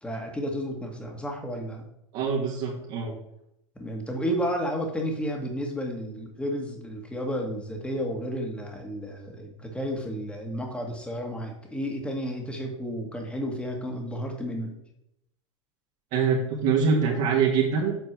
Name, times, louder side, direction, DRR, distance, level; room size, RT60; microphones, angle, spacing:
voice 1, 0.0-1.8 3.8-14.8, equal, 5° left, 2 dB, 1.8 m, -32 dB
voice 2, 2.1-3.1 16.1-17.9, right 5 dB, 50° right, -2 dB, 2.1 m, -24 dB
8.1 x 4.4 x 6.1 m, 0.79 s
hypercardioid pair, 120°, 16 cm